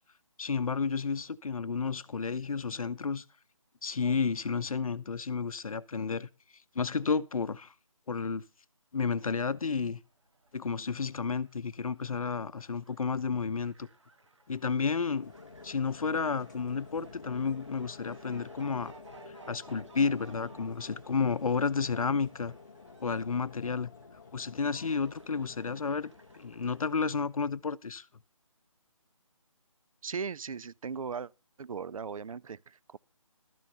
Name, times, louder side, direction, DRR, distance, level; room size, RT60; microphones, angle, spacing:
voice 1, 0.4-3.2 3.8-6.3 6.7-7.7 8.1-8.4 8.9-10.0 10.5-13.9 14.5-15.3 15.6-18.9 19.3-22.5 23.0-23.9 24.3-26.1 26.4-28.0, left 5 dB, 85° left, 0.7 m, -31 dB
Fowl, 9.9-27.3, right 3 dB, 55° right, 1.6 m, -59 dB
sound 1, 15.2-27.1, left 4 dB, 35° left, 1.0 m, -51 dB
voice 2, 30.0-31.3 31.6-33.0, right 6 dB, 75° right, 0.4 m, -38 dB
12.5 x 6.3 x 5.5 m
hypercardioid pair, 180°, 18 cm